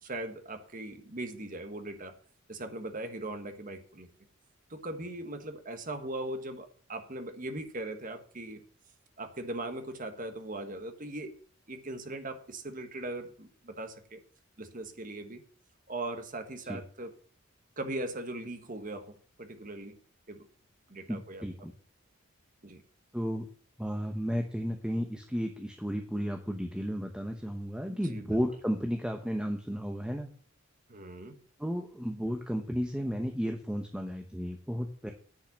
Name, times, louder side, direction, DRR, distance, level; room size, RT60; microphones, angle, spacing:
voice 1, 0.0-2.2 2.5-4.1 4.7-8.6 9.2-11.3 11.7-14.2 14.6-15.4 15.9-17.1 17.8-20.0 20.3-20.5 20.9-21.4 22.6-22.8 27.9-28.4 30.9-31.4, right 2 dB, 40° right, 7 dB, 1.6 m, -39 dB
voice 2, 21.1-21.7 23.1-23.5 23.8-30.3 31.6-35.1, equal, 5° right, 3 dB, 1.0 m, -33 dB
10.5 x 5.6 x 8.6 m, 0.44 s
head